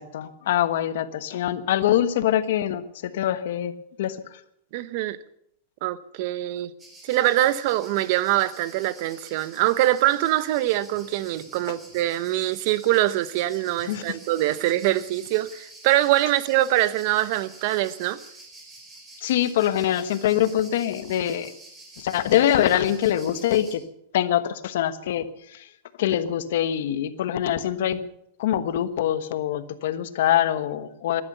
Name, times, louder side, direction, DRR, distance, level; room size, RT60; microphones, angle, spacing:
voice 1, 0.0-3.7 4.0-4.2 13.9-14.2 19.2-21.5 22.0-23.8 24.1-25.7 26.0-28.0 28.4-31.2, left 11 dB, 75° left, 12 dB, 1.2 m, -24 dB
voice 2, 4.7-5.2 5.8-6.7 7.1-18.2, right 15 dB, 55° right, 16 dB, 0.9 m, -23 dB
sound 1, 6.8-23.7, right 2 dB, 15° right, 5.1 m, -47 dB
17.5 x 12.0 x 6.8 m, 0.72 s
supercardioid pair, 150°, 0 cm